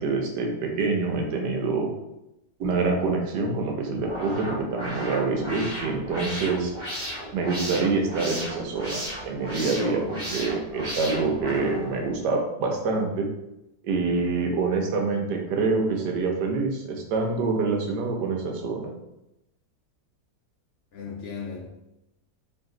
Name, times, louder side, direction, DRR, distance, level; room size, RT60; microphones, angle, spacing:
voice 1, 0.0-1.9 2.6-6.7 7.3-13.3 13.8-18.9, right 4 dB, 85° right, 2 dB, 1.3 m, -26 dB
sound 1, 4.0-12.2, equal, 20° right, 1.4 m, -35 dB
voice 2, 9.8-10.2 10.7-11.5 20.9-21.7, left 4 dB, 70° left, -1 dB, 0.7 m, -37 dB
4.0 x 2.6 x 3.7 m, 0.89 s
omnidirectional pair, 1.7 m